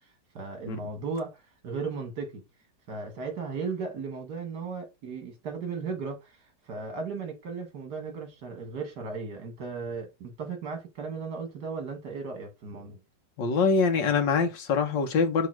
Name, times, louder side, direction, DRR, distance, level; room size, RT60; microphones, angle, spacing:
voice 1, 0.3-2.4 2.9-13.0, right 4 dB, 65° right, 2.4 m, -36 dB
voice 2, 13.4-15.5, left 5 dB, 85° left, 1.9 m, -24 dB
6.3 x 3.4 x 6.0 m
omnidirectional pair, 1.9 m